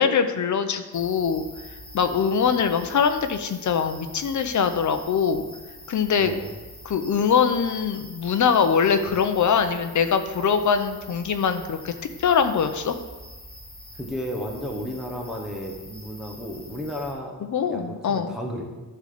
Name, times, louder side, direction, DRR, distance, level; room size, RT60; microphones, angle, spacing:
voice 1, 0.0-1.4 1.9-5.4 5.9-6.3 6.8-11.9 12.2-12.9 17.4-18.3, left 6 dB, 50° left, 9 dB, 0.7 m, -22 dB
sound 1, 0.9-17.1, left 1 dB, 25° left, 2.5 m, -44 dB
voice 2, 6.2-6.5 13.9-17.4 17.7-18.7, equal, ahead, 0 dB, 0.9 m, -33 dB
12.0 x 3.9 x 6.6 m, 1.2 s
wide cardioid pair, 175°, 38 cm